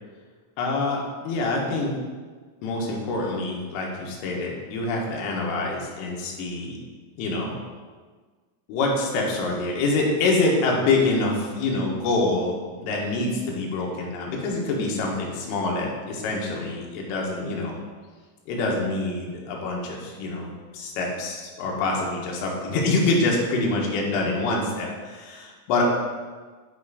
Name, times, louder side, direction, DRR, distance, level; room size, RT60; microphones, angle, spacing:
voice 1, 0.6-1.9 2.6-6.8 7.2-7.5 8.7-17.8 18.5-25.8, left 2 dB, 85° left, -1 dB, 3.5 m, -26 dB
10.5 x 4.8 x 2.4 m, 1.4 s
omnidirectional pair, 5.6 m